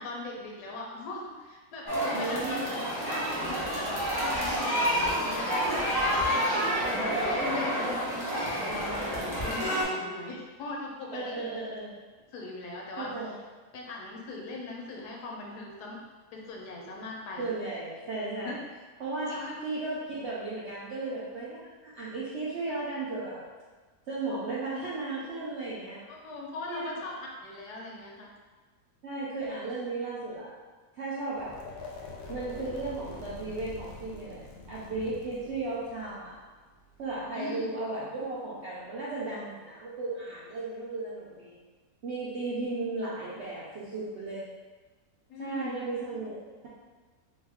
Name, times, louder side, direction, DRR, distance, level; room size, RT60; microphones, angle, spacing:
voice 1, 0.0-2.6 3.0-8.1 8.7-11.6 12.3-13.1 13.7-16.0 16.3-17.5 18.4-18.6 19.3-19.5 26.2-28.3 37.3-37.7 45.3-45.8, left 2 dB, 85° left, -1 dB, 1.2 m, -40 dB
sound 1, 1.9-9.8, equal, 35° left, 0.3 m, -29 dB
voice 2, 2.1-2.7 9.7-9.8 11.1-11.9 13.0-13.3 17.4-18.5 19.0-19.4 19.6-23.4 24.1-26.0 26.7-26.9 29.0-30.5 31.0-31.5 32.3-36.4 37.0-41.6 42.0-44.4 45.4-46.7, right 3 dB, 70° right, -7 dB, 0.6 m, -35 dB
sound 2, 31.3-37.3, left 3 dB, 70° left, 0.9 m, -45 dB
2.9 x 2.3 x 3.4 m, 1.3 s
omnidirectional pair, 1.7 m